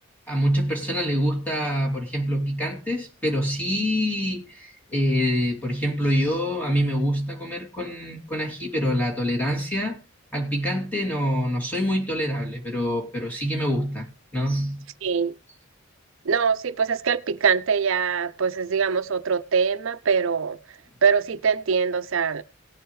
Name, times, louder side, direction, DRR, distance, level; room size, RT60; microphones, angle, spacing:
voice 1, 0.3-10.0 10.3-14.1 14.3-14.8, equal, 10° left, 2.7 m, -25 dB
voice 2, 15.0-15.3 16.3-20.6 21.0-22.4, right 6 dB, 65° right, 0.5 m, -23 dB
18.5 x 7.9 x 3.2 m
head